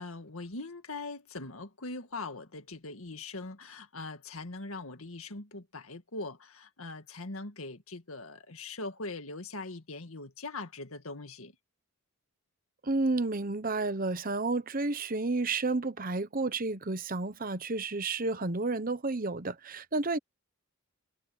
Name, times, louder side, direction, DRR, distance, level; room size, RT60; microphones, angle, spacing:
voice 1, 0.0-11.5, left 3 dB, 75° left, 2.0 m, -41 dB
voice 2, 12.8-20.2, right 3 dB, 40° right, 1.0 m, -31 dB
head